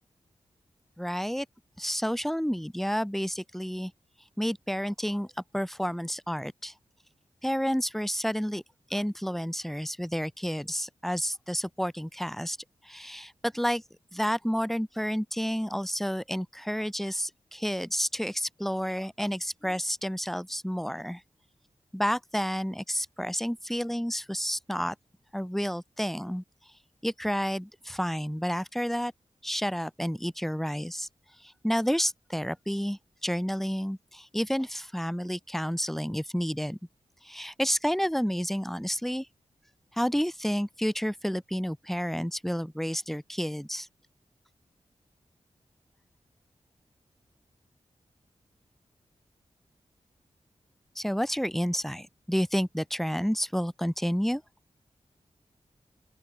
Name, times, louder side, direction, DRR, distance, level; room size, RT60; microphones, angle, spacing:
voice 1, 1.0-1.5 1.8-3.9 4.4-5.3 5.5-6.7 7.4-8.6 8.9-12.6 12.8-13.8 14.1-21.2 21.9-24.9 25.3-26.4 27.0-29.1 29.4-31.1 31.4-36.8 37.2-39.3 39.9-43.9 51.0-54.4, equal, ahead, 2.5 m, -30 dB
open air
cardioid pair, 60°, 12 cm